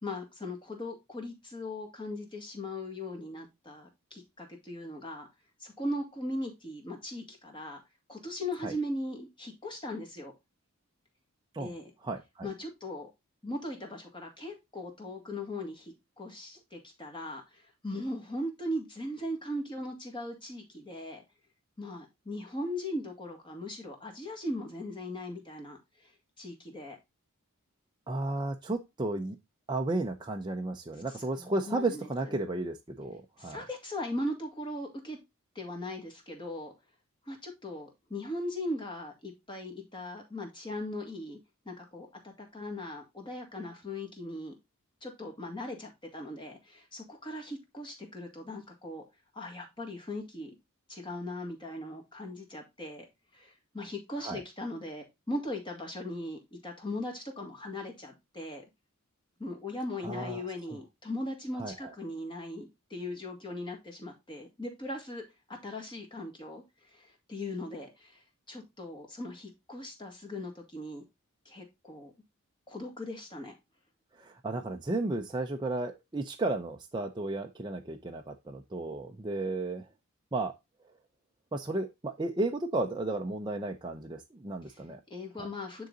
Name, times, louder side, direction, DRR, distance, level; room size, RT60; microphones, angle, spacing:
voice 1, 0.0-5.3 5.6-7.8 8.1-10.3 11.6-11.9 12.4-13.1 13.4-21.2 21.8-26.1 26.4-27.0 31.4-32.3 33.4-35.2 35.6-36.7 37.3-41.4 41.7-44.5 45.0-49.0 49.3-50.5 50.9-53.1 53.3-58.6 59.4-71.0 71.5-72.1 72.7-73.5 84.7-84.8 85.1-85.9, left 1 dB, 20° left, 1.9 m, -39 dB
voice 2, 12.0-12.5 28.1-29.4 29.7-33.6 54.2-54.4 60.0-60.5 61.6-61.7 74.2-79.8 80.3-80.5 81.5-85.0 85.4-85.5, right 2 dB, 20° right, 0.6 m, -33 dB
9.5 x 3.9 x 3.8 m
head